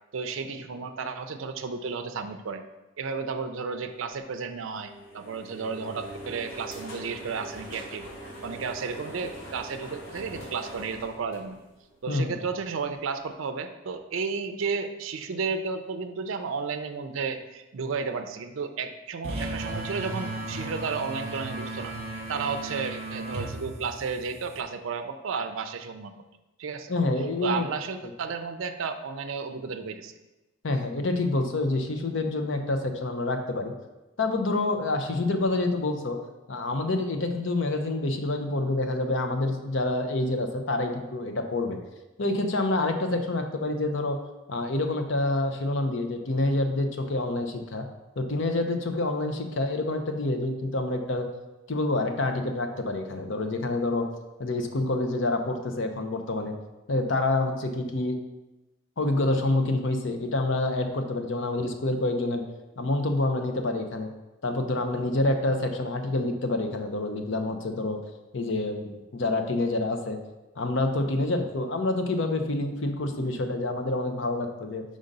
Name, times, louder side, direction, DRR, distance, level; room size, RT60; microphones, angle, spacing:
voice 1, 0.1-2.6 3.0-8.1 8.4-11.6 12.0-22.0 22.3-26.1 26.6-26.9 27.4-30.1, right 5 dB, 70° right, 8 dB, 0.4 m, -33 dB
sound 1, 4.8-12.1, equal, 80° left, 1.8 m, -42 dB
voice 2, 12.1-12.4 26.9-27.6 30.6-33.7 34.2-36.2 36.5-41.8 42.2-44.2 44.5-47.9 48.2-51.2 51.7-54.1 54.4-56.5 56.9-58.2 59.0-62.4 62.8-64.1 64.4-68.0 68.3-70.2 70.6-74.8, left 2 dB, 60° left, 5 dB, 0.6 m, -27 dB
sound 2, 19.2-24.6, right 2 dB, 30° right, 0.8 m, -35 dB
5.1 x 3.9 x 5.3 m, 1.0 s
head